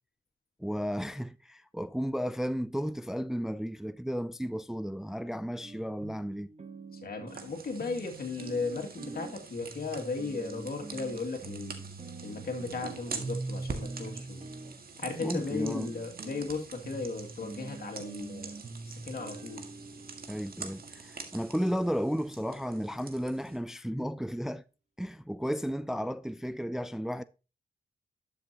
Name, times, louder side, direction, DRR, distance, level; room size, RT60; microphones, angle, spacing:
voice 1, 0.6-6.5 15.2-15.9 20.3-24.6 25.0-27.2, equal, 5° right, 0.4 m, -33 dB
sound 1, 5.6-21.9, right 3 dB, 45° right, 1.3 m, -44 dB
voice 2, 7.0-11.8 12.2-14.5 15.0-18.5 18.8-19.6, left 4 dB, 60° left, 2.4 m, -36 dB
sound 2, 7.3-23.6, right 5 dB, 60° right, 1.8 m, -46 dB
11.5 x 7.0 x 2.9 m
supercardioid pair, 45°, 17 cm